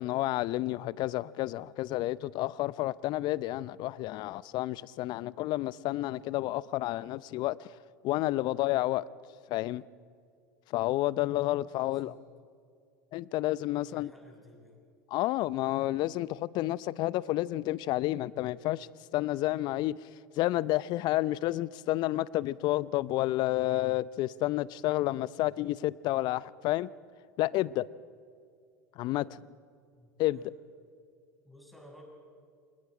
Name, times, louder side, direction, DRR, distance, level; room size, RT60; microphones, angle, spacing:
voice 1, 0.0-7.7 8.0-9.0 9.5-9.8 10.7-12.1 13.1-14.1 15.1-20.0 20.4-26.9 27.4-27.9 29.0-29.4 30.2-30.4, left 16 dB, 50° left, 0.6 m, -30 dB
voice 2, 11.6-12.2 13.8-14.8 29.9-30.5 31.4-32.0, left 1 dB, ahead, 6.7 m, -55 dB
28.5 x 26.5 x 5.0 m
hypercardioid pair, 80°, 10 cm